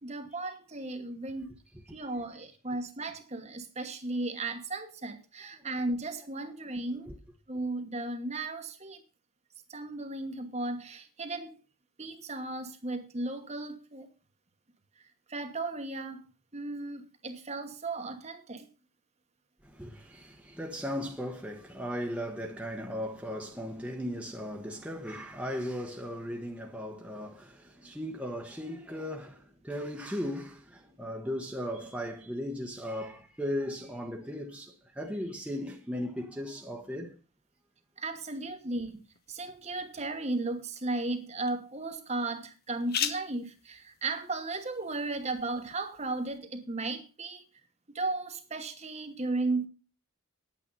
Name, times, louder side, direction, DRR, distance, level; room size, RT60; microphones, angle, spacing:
voice 1, 0.0-1.5 1.9-7.1 7.5-9.0 9.7-11.6 12.0-14.1 15.0-16.2 16.5-18.7 38.0-39.0 39.3-47.4 47.9-49.7, right 2 dB, 30° right, 1.2 m, -35 dB
voice 2, 19.6-37.2, equal, 5° right, 1.0 m, -37 dB
sound 1, 38.9-46.4, left 8 dB, 45° left, 0.9 m, -42 dB
9.9 x 8.7 x 5.4 m
head